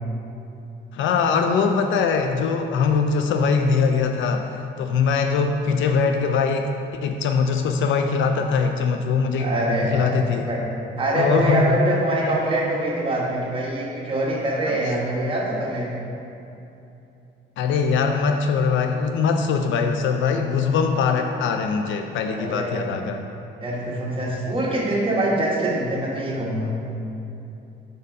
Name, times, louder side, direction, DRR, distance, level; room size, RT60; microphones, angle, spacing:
voice 1, 0.9-6.7 7.0-9.5 9.8-10.5 11.1-11.8 14.7-15.0 17.6-23.3, left 5 dB, 75° left, 5 dB, 0.4 m, -22 dB
voice 2, 9.4-10.6 11.0-15.9 22.2-23.1 23.6-26.7, right 1 dB, 25° right, -4 dB, 1.4 m, -24 dB
4.9 x 4.2 x 5.2 m, 2.8 s
cardioid pair, 90°, 20 cm